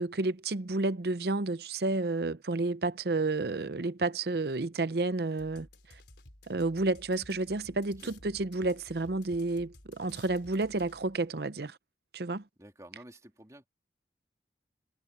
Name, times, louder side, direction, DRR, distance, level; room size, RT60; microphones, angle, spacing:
voice 1, 0.0-6.0 6.5-11.8 12.1-12.4, right 2 dB, 60° right, 0.7 m, -31 dB
sound 1, 5.4-11.2, left 2 dB, 70° left, 3.7 m, -55 dB
voice 2, 12.6-13.7, right 1 dB, 20° right, 3.4 m, -51 dB
head